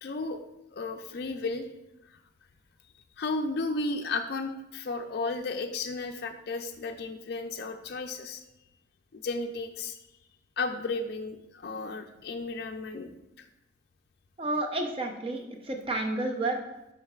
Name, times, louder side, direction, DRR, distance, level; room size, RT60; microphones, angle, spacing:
voice 1, 0.0-0.4 0.7-1.7 2.1-2.2 3.2-8.4 9.1-10.0 10.6-13.1 13.4-13.5, left 3 dB, 50° left, 5 dB, 0.4 m, -33 dB
voice 2, 14.4-16.6, right 2 dB, 30° right, 3 dB, 0.6 m, -31 dB
11.0 x 3.8 x 2.4 m, 0.91 s
head